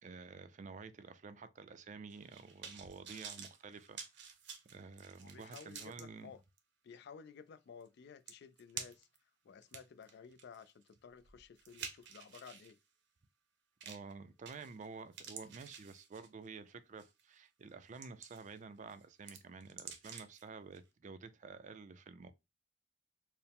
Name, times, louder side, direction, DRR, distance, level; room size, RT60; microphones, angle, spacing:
voice 1, 0.0-4.4 4.7-6.3 13.8-22.3, right 4 dB, 40° right, 0.4 m, -51 dB
sound 1, 2.1-6.0 6.6-6.7 7.9-8.0 8.3-9.2 9.6-12.7 13.8-14.1 14.5-14.9 15.1-16.5 17.0-17.2 17.7-18.6 18.9-20.4 20.7-20.8, right 7 dB, 65° right, 0.8 m, -50 dB
voice 2, 5.2-6.4 6.8-9.1 9.4-12.8, left 6 dB, 60° left, 0.4 m, -54 dB
4.5 x 2.0 x 3.4 m
head